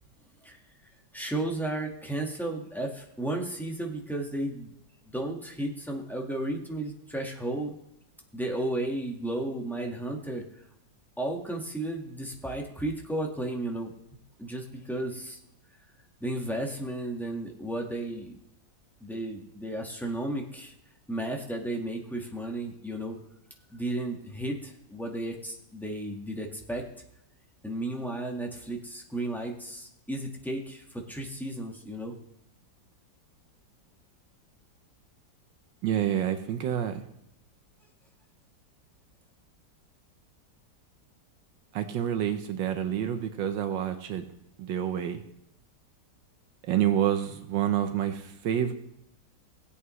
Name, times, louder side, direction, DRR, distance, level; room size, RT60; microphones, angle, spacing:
voice 1, 1.1-4.7 5.1-7.8 8.3-10.4 11.2-13.9 14.4-15.4 16.2-18.4 19.0-20.7 21.1-23.2 23.7-26.8 27.6-32.1, right 1 dB, ahead, 0 dB, 1.3 m, -33 dB
voice 2, 35.8-37.0 41.7-44.2 44.6-45.2 46.7-48.7, right 10 dB, 80° right, 8 dB, 1.5 m, -28 dB
18.0 x 8.5 x 3.1 m, 0.78 s
omnidirectional pair, 2.0 m